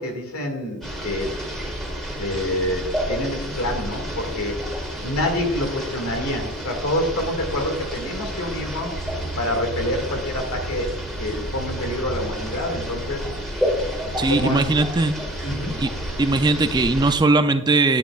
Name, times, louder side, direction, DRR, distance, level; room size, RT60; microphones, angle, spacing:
voice 1, 0.0-1.4 2.2-4.6 5.0-9.0 9.4-10.9 11.2-13.3 14.3-14.7 15.4-15.8, left 1 dB, 75° left, 3 dB, 2.1 m, -27 dB
sound 1, 0.8-17.2, equal, ahead, 1.7 m, -30 dB
voice 2, 14.2-15.2 15.8-15.9 16.2-18.0, right 3 dB, 20° right, 9 dB, 0.4 m, -19 dB
10.5 x 9.8 x 2.4 m, 0.88 s
head